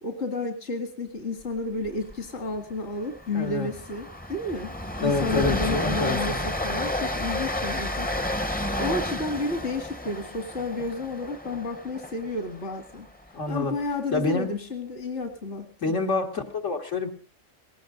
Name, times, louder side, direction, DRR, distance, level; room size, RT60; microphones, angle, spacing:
voice 1, 0.0-4.7 5.0-6.3 6.6-8.1 8.7-13.1 13.5-15.9, left 2 dB, 65° left, 6 dB, 2.1 m, -31 dB
Train, 1.8-2.1 2.4-2.6 2.9-13.1, left 1 dB, 10° left, 0.6 m, -31 dB
voice 2, 3.3-3.7 5.0-6.4 13.3-13.7 14.1-14.5 15.8-17.1, left 3 dB, 85° left, 2 dB, 2.5 m, -27 dB
19.0 x 18.0 x 3.9 m, 0.35 s
omnidirectional pair, 1.2 m